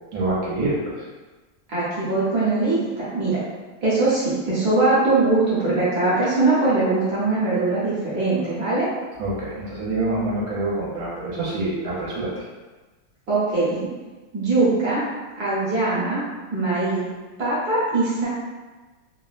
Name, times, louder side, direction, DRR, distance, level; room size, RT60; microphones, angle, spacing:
voice 1, 0.1-1.1 9.2-12.4, right 2 dB, 80° right, -6 dB, 1.5 m, -26 dB
voice 2, 1.7-3.4 3.8-8.9 13.3-13.7 14.3-15.0 15.4-16.2 16.5-17.1 17.4-18.3, right 2 dB, 60° right, -10 dB, 1.2 m, -21 dB
3.6 x 2.0 x 2.4 m, 1.3 s
omnidirectional pair, 2.4 m